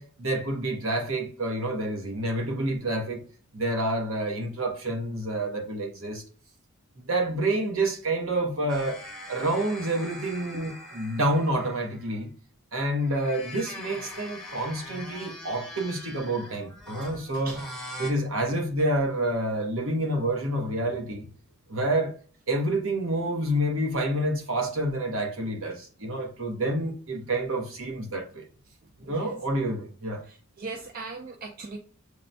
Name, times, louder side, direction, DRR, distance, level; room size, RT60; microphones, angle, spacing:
voice 1, 0.0-3.3 3.5-6.2 7.0-9.0 9.3-12.3 12.7-17.6 18.0-21.3 21.7-22.1 22.5-28.5 29.0-30.2, right 1 dB, 65° right, 1.0 m, -28 dB
sound 1, 8.7-12.2 12.9-18.1, left 1 dB, 5° left, 0.7 m, -42 dB
voice 2, 16.9-17.7 28.8-29.4 30.2-31.8, right 3 dB, 40° right, 0.4 m, -40 dB
6.5 x 2.2 x 2.6 m
head